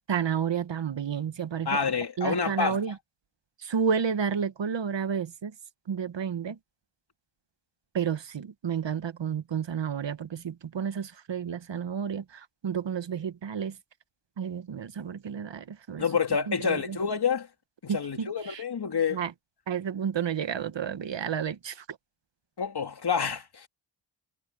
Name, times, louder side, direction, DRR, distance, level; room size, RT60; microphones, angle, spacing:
voice 1, 0.1-1.9 2.2-3.0 3.6-5.5 5.9-6.6 7.9-13.8 14.4-16.0 16.5-17.0 17.9-18.6 19.1-19.3 19.7-22.0, right 7 dB, 65° right, 1.3 m, -31 dB
voice 2, 1.7-2.8 16.0-17.5 17.8-19.2 22.6-23.7, left 6 dB, 55° left, 2.6 m, -28 dB
cardioid pair, 75°, 46 cm